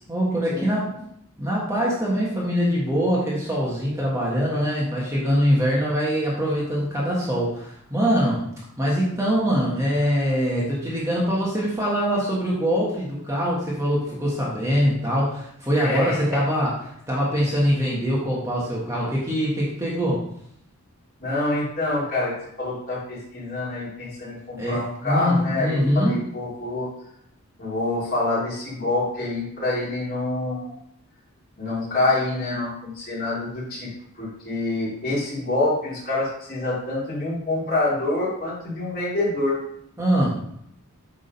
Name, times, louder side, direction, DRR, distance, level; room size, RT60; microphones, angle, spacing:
voice 1, 0.1-0.9 1.4-8.5 8.8-20.2 24.6-26.2 40.0-40.3, equal, 15° right, -5 dB, 1.4 m, -23 dB
voice 2, 15.7-16.4 21.2-22.3 22.6-26.9 27.6-30.7 31.6-33.9 34.2-39.6, left 2 dB, 40° left, -7 dB, 3.3 m, -26 dB
8.1 x 3.8 x 5.3 m, 0.71 s
head